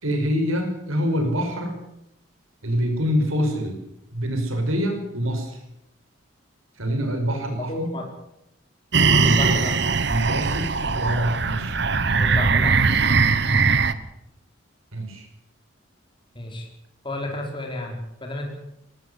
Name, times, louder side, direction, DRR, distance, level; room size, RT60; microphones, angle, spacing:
voice 1, 0.0-1.8 2.6-3.8 4.1-5.6 6.8-8.0 8.9-9.6 10.0-11.8 14.9-15.3, equal, 80° right, 5 dB, 5.7 m, -25 dB
voice 2, 7.7-8.1 9.2-9.8 12.2-12.8 16.3-16.7 17.0-18.6, left 1 dB, 25° left, 1 dB, 4.8 m, -32 dB
sound 1, 8.9-13.9, right 4 dB, 55° right, 1.2 m, -20 dB
19.0 x 19.0 x 8.3 m, 0.81 s
head